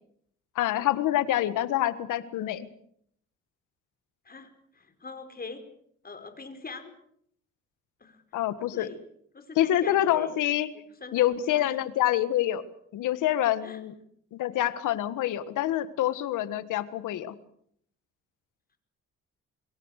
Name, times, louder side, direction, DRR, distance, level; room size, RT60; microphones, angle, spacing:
voice 1, 0.5-2.6 8.3-8.9 9.5-10.7 11.1-12.6 12.9-13.9 14.3-17.3, left 12 dB, 85° left, 14 dB, 1.7 m, -26 dB
voice 2, 4.2-5.6 6.0-6.9 8.0-8.2 8.7-9.0 9.3-10.3 11.0-11.8 13.6-13.8, left 4 dB, 30° left, 8 dB, 4.7 m, -43 dB
25.0 x 22.5 x 6.6 m, 0.67 s
cardioid pair, 90°, 30 cm